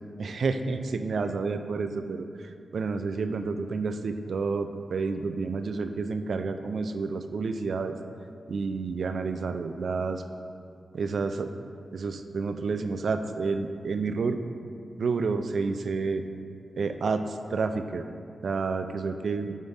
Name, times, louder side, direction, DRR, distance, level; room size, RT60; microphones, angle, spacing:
voice 1, 0.2-8.0 8.5-10.2 10.9-11.5 11.9-14.4 15.0-16.2 16.8-18.0 18.4-19.6, right 4 dB, 70° right, 8 dB, 0.3 m, -30 dB
5.4 x 3.9 x 4.7 m, 2.4 s
cardioid pair, 85°, 0 cm